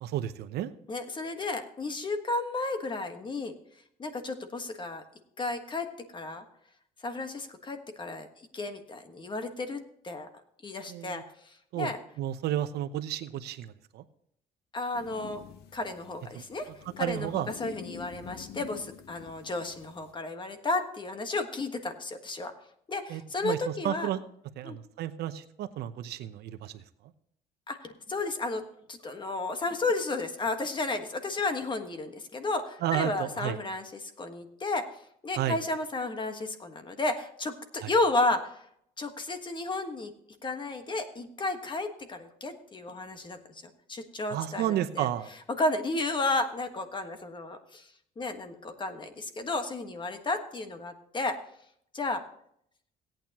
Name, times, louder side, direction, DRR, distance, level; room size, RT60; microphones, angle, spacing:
voice 1, 0.0-0.7 10.9-11.2 11.7-11.9 12.2-14.0 16.3-16.4 17.0-17.5 23.1-24.2 24.6-26.8 32.8-33.6 35.3-35.6 37.8-37.9 44.3-45.3, right 12 dB, 75° right, 11 dB, 0.8 m, -32 dB
voice 2, 0.9-3.5 4.0-5.0 5.4-5.9 6.1-6.4 7.0-10.3 10.6-12.0 14.7-15.4 15.7-16.7 17.0-22.5 22.9-24.1 24.6-24.8 27.7-28.6 28.9-34.9 35.2-38.6 39.0-40.1 40.4-43.4 43.9-45.1 45.5-47.9 48.2-51.4 51.9-52.2, left 2 dB, 30° left, 7 dB, 1.5 m, -33 dB
sound 1, 14.9-20.1, left 9 dB, 75° left, 1.0 m, -47 dB
17.0 x 9.1 x 3.0 m, 0.69 s
cardioid pair, 110°, 17 cm